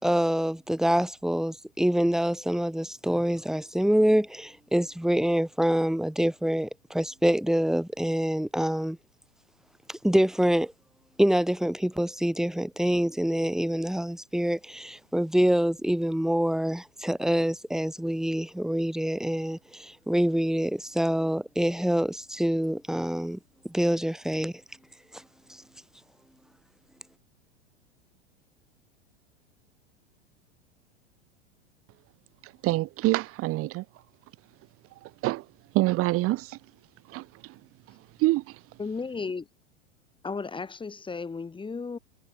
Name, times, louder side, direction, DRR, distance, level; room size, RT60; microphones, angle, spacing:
voice 1, 0.0-9.0 9.9-10.7 11.2-23.4 23.6-24.5, equal, ahead, 3.9 m, -26 dB
voice 2, 32.4-33.8 35.0-35.5 35.7-36.6 37.1-37.6 38.2-38.6, right 19 dB, 40° right, 2.5 m, -26 dB
voice 3, 38.8-39.5 40.2-42.0, left 4 dB, 15° left, 5.4 m, -34 dB
figure-of-eight pair, 95°, 34 cm